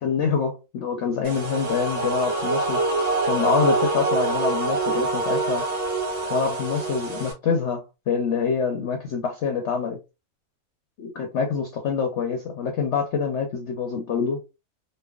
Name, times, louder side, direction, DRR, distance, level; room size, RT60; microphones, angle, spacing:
voice 1, 0.0-2.8 3.2-5.7 6.3-10.0 11.0-14.4, left 6 dB, 65° left, 0.7 m, -26 dB
sound 1, 1.2-7.3, right 3 dB, 75° right, 1.4 m, -25 dB
3.2 x 2.2 x 2.3 m
omnidirectional pair, 1.6 m